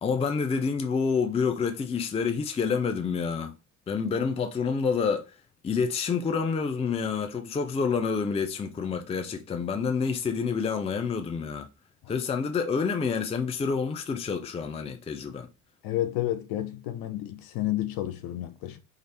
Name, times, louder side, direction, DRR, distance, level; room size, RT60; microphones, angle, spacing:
voice 1, 0.0-3.5 3.9-5.3 5.6-11.7 12.1-15.5, left 5 dB, 15° left, 0.5 m, -28 dB
voice 2, 15.8-18.8, left 13 dB, 50° left, 0.7 m, -31 dB
3.2 x 2.5 x 4.1 m
figure-of-eight pair, 60°, 45 cm